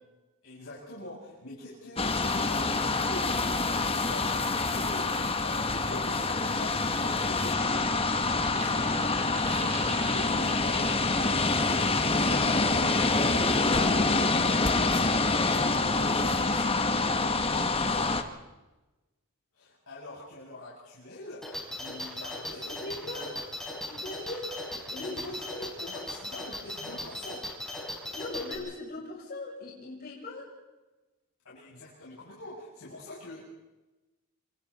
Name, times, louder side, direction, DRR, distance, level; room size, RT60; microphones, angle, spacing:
voice 1, 0.4-3.5 3.9-4.4 4.7-11.0 11.3-15.0 15.3-18.1 19.5-23.3 25.0-27.4 31.4-33.4, left 1 dB, 70° left, -7 dB, 7.5 m, -44 dB
sound 1, 2.0-18.2, left 3 dB, 25° left, 1.4 m, -26 dB
sound 2, 8.3-11.8 12.2-12.4, right 3 dB, 30° right, 3.4 m, -43 dB
sound 3, 21.4-28.6, left 1 dB, ahead, 4.5 m, -38 dB
voice 2, 22.7-23.3 23.9-24.6 24.9-25.7 28.1-30.5, left 2 dB, 45° left, -4 dB, 7.4 m, -39 dB
28.0 x 26.5 x 4.3 m, 1.1 s
head